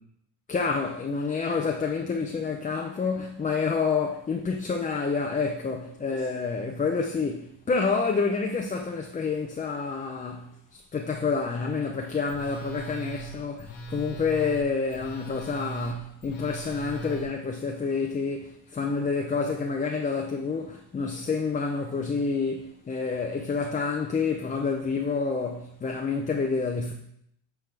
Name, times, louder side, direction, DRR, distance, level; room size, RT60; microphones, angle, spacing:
voice 1, 0.5-26.9, left 4 dB, 20° left, 0.5 m, -28 dB
Telephone, 12.3-17.3, right 5 dB, 70° left, 1.5 m, -39 dB
9.2 x 3.5 x 3.3 m
cardioid pair, 95°, 45 cm